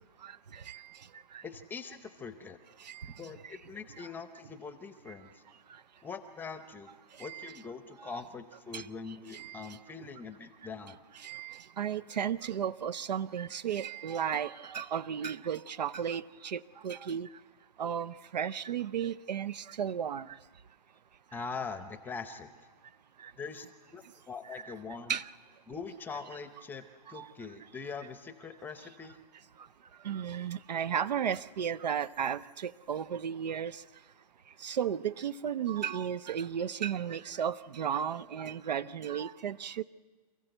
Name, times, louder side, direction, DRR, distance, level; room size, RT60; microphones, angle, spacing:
voice 1, 0.2-0.8 1.3-1.4 2.8-3.1 4.0-4.1 7.2-7.6 8.0-8.2 8.7-8.9 9.3-9.7 11.2-17.3 17.8-20.4 23.2-23.3 24.5-24.7 25.1-25.3 27.1-27.3 30.0-33.8 34.6-39.8, right 8 dB, 80° right, 17 dB, 0.6 m, -34 dB
voice 2, 1.4-2.6 3.2-5.4 6.0-6.9 7.2-11.0 21.3-22.5 23.4-25.1 25.7-29.2, left 5 dB, 10° left, 10 dB, 0.7 m, -43 dB
28.0 x 15.0 x 7.9 m, 1.4 s
hypercardioid pair, 145°, 21 cm